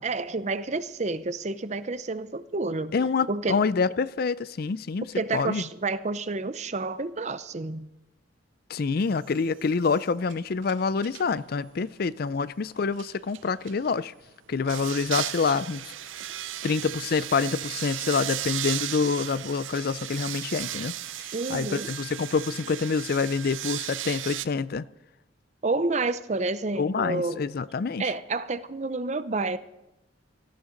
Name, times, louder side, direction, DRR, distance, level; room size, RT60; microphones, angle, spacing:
voice 1, 0.0-2.9 3.3-3.6 5.2-7.9 21.3-21.9 25.6-27.4 28.0-29.6, right 3 dB, 35° right, 0.6 m, -29 dB
voice 2, 2.9-5.1 5.3-5.6 8.7-14.1 14.5-15.9 16.6-20.9 21.2-24.8 26.8-28.0, left 5 dB, 50° left, 0.4 m, -27 dB
sound 1, 9.3-9.6 9.9-11.3 12.9-13.9 14.7-24.4, right 13 dB, 85° right, 0.6 m, -35 dB
17.5 x 15.0 x 3.9 m
head